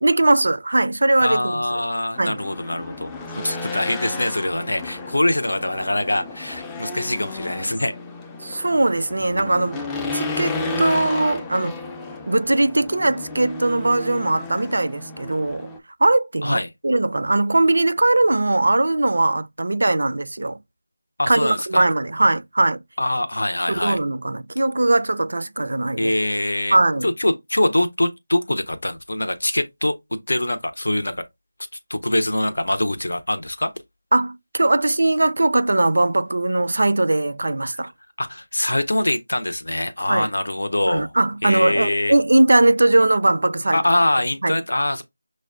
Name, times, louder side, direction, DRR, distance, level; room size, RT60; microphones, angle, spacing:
voice 1, 0.0-1.6 2.2-2.4 8.4-9.8 10.1-11.7 12.3-15.7 16.0-20.6 21.3-22.8 23.7-26.1 26.7-27.1 34.1-37.9 40.1-40.3 40.9-43.8 44.4-44.6, right 2 dB, 70° right, 0.4 m, -20 dB
voice 2, 1.2-7.9 16.4-16.7 21.2-21.9 23.0-24.0 26.0-26.8 27.0-31.2 31.9-33.7 38.2-41.1 41.4-42.1 43.7-45.0, left 1 dB, 80° left, 0.5 m, -23 dB
Race car auto racing / Engine, 2.1-15.8, left 3 dB, 10° left, 0.3 m, -33 dB
6.2 x 2.1 x 2.4 m
figure-of-eight pair, 165°, 0 cm